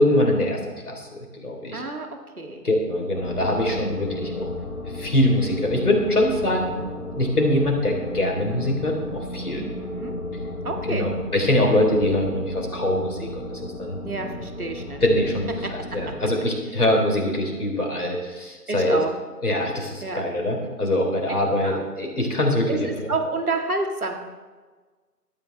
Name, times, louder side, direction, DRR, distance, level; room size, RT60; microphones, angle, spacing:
voice 1, 0.0-1.8 2.6-4.5 4.9-6.7 7.1-9.6 10.8-14.0 15.0-19.0 19.4-23.1, left 1 dB, 65° left, 1 dB, 3.7 m, -23 dB
voice 2, 1.7-2.1 2.4-2.7 9.6-10.2 10.6-11.1 14.0-15.0 16.1-16.2 18.7-19.1 20.0-20.2 21.6-21.8 22.7-24.2, right 3 dB, 60° right, 3 dB, 2.0 m, -29 dB
sound 1, 3.1-16.1, left 2 dB, 50° left, 3.5 m, -34 dB
17.5 x 12.0 x 3.4 m, 1.4 s
figure-of-eight pair, 155°, 48 cm